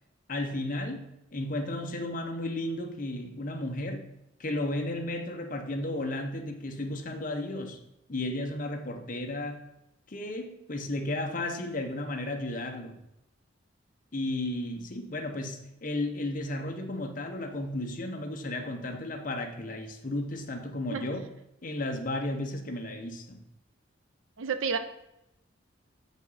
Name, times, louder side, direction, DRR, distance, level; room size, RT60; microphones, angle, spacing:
voice 1, 0.3-4.1 4.4-7.8 8.1-9.7 10.1-13.0 14.1-21.3 21.6-23.4, left 1 dB, 45° left, 5 dB, 0.8 m, -34 dB
voice 2, 24.4-24.8, right 6 dB, 90° right, 10 dB, 0.6 m, -30 dB
7.2 x 5.2 x 4.1 m, 0.87 s
head